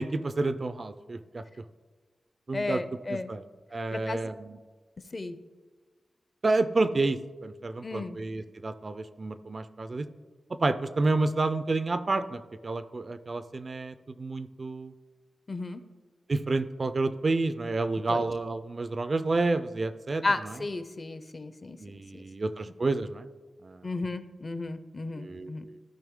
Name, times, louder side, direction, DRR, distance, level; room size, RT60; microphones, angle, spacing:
voice 1, 0.0-1.4 2.5-2.8 3.3-3.4 3.7-4.6 6.4-10.1 10.6-14.9 16.3-20.2 21.8-23.3 23.6-23.8 25.2-25.8, right 3 dB, 35° right, 12 dB, 0.3 m, -29 dB
voice 2, 2.5-3.3 3.9-4.2 5.1-5.4 7.8-8.2 15.5-15.8 18.1-18.2 20.2-22.2 23.8-25.7, left 2 dB, 30° left, 11 dB, 0.5 m, -34 dB
14.0 x 5.4 x 3.6 m, 1.3 s
wide cardioid pair, 170°, 0 cm